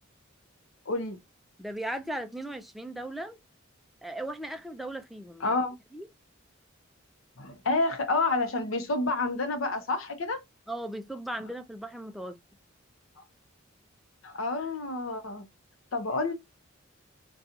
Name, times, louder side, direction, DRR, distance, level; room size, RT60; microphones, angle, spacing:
voice 1, 0.9-1.2 5.4-5.7 7.4-10.4 13.2-13.3 14.2-15.4 15.9-16.3, left 3 dB, 70° left, 0.7 m, -29 dB
voice 2, 1.6-3.4 4.0-5.4 5.9-6.1 10.7-12.4, right 1 dB, ahead, 0.4 m, -37 dB
2.7 x 2.3 x 3.7 m
head